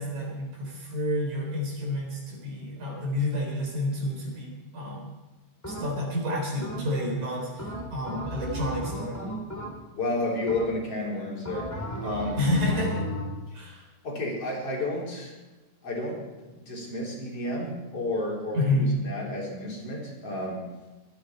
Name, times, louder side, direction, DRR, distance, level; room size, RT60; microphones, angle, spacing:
voice 1, 0.0-5.1 5.7-9.3 12.4-13.1 13.5-13.8 18.6-18.9, left 1 dB, 65° right, 0 dB, 5.3 m, -29 dB
sound 1, 5.6-6.2 6.6-7.1 7.6-10.1 10.5-11.0 11.4-13.4, right 1 dB, 5° left, 2.5 m, -35 dB
voice 2, 9.9-11.7 12.0-12.4 13.5-13.6 14.0-15.3 15.8-16.2 16.5-20.7, left 1 dB, 50° left, -3 dB, 4.7 m, -31 dB
23.5 x 10.5 x 4.5 m, 1.1 s
omnidirectional pair, 3.6 m